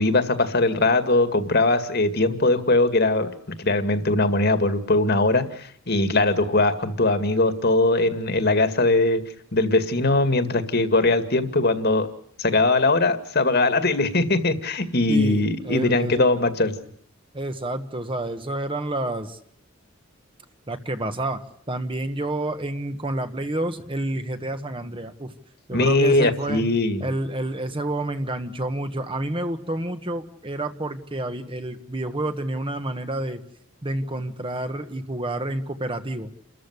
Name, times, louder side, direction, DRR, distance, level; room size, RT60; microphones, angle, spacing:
voice 1, 0.0-3.3 3.6-9.2 9.5-12.1 12.4-16.7 25.7-27.0, left 2 dB, 50° left, 10 dB, 2.2 m, -21 dB
voice 2, 15.1-16.2 17.3-19.4 20.7-21.4 21.7-25.3 25.7-26.6 27.0-33.4 33.8-36.3, right 1 dB, 25° right, 9 dB, 1.5 m, -29 dB
29.5 x 14.0 x 9.6 m, 0.67 s
head